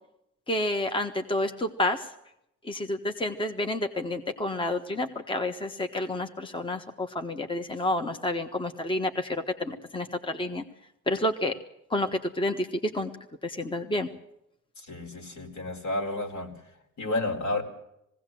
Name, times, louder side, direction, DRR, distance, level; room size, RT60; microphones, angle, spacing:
voice 1, 0.5-2.1 2.6-10.6 11.1-11.5 11.9-13.1 13.4-14.1, left 1 dB, 15° left, 6 dB, 1.4 m, -29 dB
voice 2, 14.8-16.5 17.0-17.6, left 2 dB, 65° left, 2 dB, 4.3 m, -31 dB
20.0 x 17.0 x 7.7 m, 0.81 s
cardioid pair, 90°, 30 cm